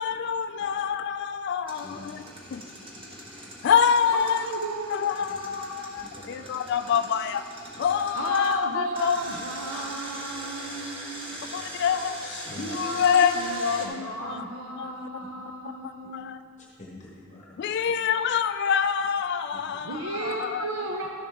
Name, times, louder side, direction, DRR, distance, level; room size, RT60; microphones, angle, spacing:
voice 1, 0.0-2.2 2.5-2.6 3.6-4.4 4.9-7.4 7.8-9.2 9.7-9.9 11.5-14.4 14.8-14.9 15.8-16.4 17.6-20.7, left 7 dB, 55° left, 11 dB, 0.3 m, -26 dB
Engine, 1.7-8.5 8.9-13.9, right 1 dB, 25° right, 1.1 m, -41 dB
voice 2, 1.8-2.5 2.8-3.5 5.3-5.4 6.0-6.4 7.7-8.0 12.5-12.7 16.8-17.8 19.5-19.6, left 1 dB, 35° left, -4 dB, 1.0 m, -47 dB
voice 3, 4.1-5.9 7.0-7.1 8.1-11.5 12.4-16.4 19.7-21.1, right 3 dB, 85° right, 1 dB, 0.6 m, -35 dB
12.0 x 6.9 x 3.5 m, 2.4 s
head